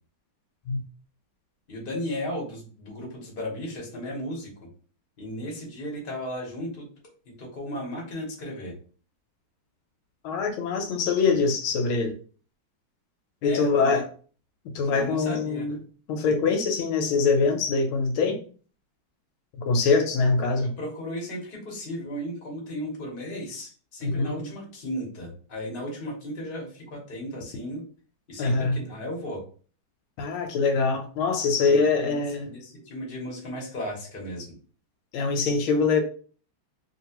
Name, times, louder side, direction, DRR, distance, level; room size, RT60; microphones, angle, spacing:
voice 1, 1.7-4.5 5.2-6.9 7.3-8.7 13.4-14.0 14.8-15.8 20.4-27.8 28.3-29.4 31.6-34.5, equal, 35° left, 1.0 m, -35 dB
voice 2, 10.2-12.2 13.4-14.0 14.7-15.7 16.1-18.4 19.7-20.7 24.0-24.5 28.4-28.8 30.2-32.5 35.1-36.0, left 4 dB, 80° left, 1.4 m, -23 dB
3.0 x 2.8 x 2.8 m
omnidirectional pair, 2.3 m